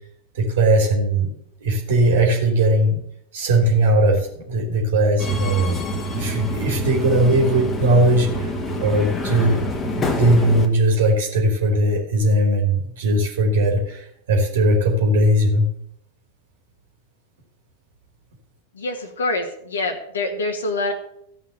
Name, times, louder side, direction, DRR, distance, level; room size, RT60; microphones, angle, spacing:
voice 1, 0.3-1.3 1.6-3.0 3.3-5.9 6.1-8.5 8.8-9.6 9.9-15.7, right 1 dB, 60° right, 1 dB, 2.8 m, -19 dB
Subway metro underground, 5.2-10.7, left 1 dB, 20° left, 1.8 m, -26 dB
voice 2, 18.7-20.9, left 2 dB, 70° left, 3 dB, 1.6 m, -25 dB
15.0 x 5.5 x 7.9 m, 0.72 s
figure-of-eight pair, 90°, 0 cm